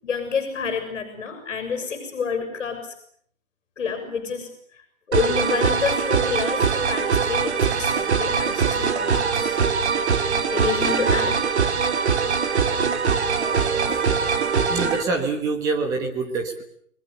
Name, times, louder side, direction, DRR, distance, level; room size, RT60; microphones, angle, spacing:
voice 1, 0.0-2.9 3.8-4.8 5.1-9.6 10.5-11.5, left 5 dB, 55° left, 6 dB, 6.7 m, -28 dB
sound 1, 5.1-15.0, right 5 dB, 55° right, 2.7 m, -22 dB
voice 2, 14.6-16.6, right 3 dB, 10° right, 5 dB, 1.5 m, -26 dB
29.5 x 22.5 x 6.8 m, 0.62 s
hypercardioid pair, 175°, 40 cm